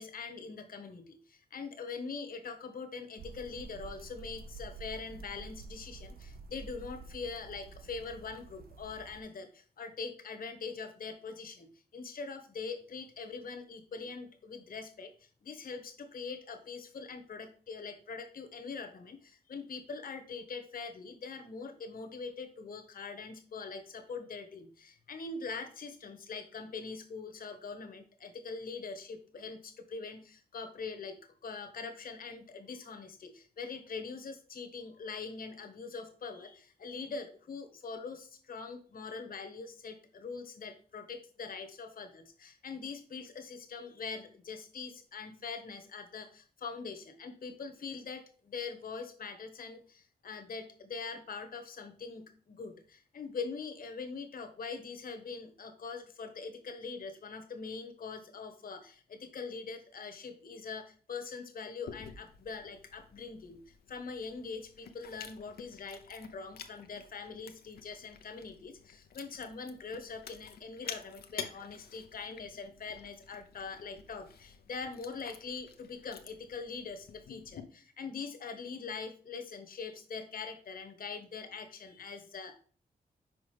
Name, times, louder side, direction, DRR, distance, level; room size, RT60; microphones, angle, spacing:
voice 1, 0.0-82.5, left 4 dB, 65° left, 6 dB, 1.3 m, -43 dB
sound 1, 3.2-9.2, right 3 dB, 75° right, 0.7 m, -49 dB
Chewing mastication, 61.9-77.6, left 8 dB, 90° left, 0.7 m, -50 dB
6.1 x 4.9 x 3.2 m, 0.43 s
wide cardioid pair, 100°, 16 cm